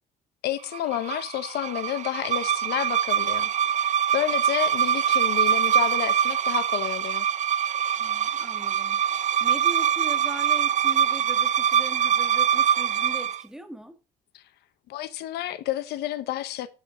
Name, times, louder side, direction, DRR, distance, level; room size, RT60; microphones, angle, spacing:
voice 1, 0.4-7.3 14.3-14.4 14.9-16.7, left 13 dB, 80° left, 0.9 m, -30 dB
sound 1, 0.7-13.4, right 9 dB, 45° right, 0.7 m, -24 dB
voice 2, 8.0-14.0, equal, 5° right, 1.6 m, -40 dB
8.3 x 7.3 x 3.8 m
cardioid pair, 110°, 17 cm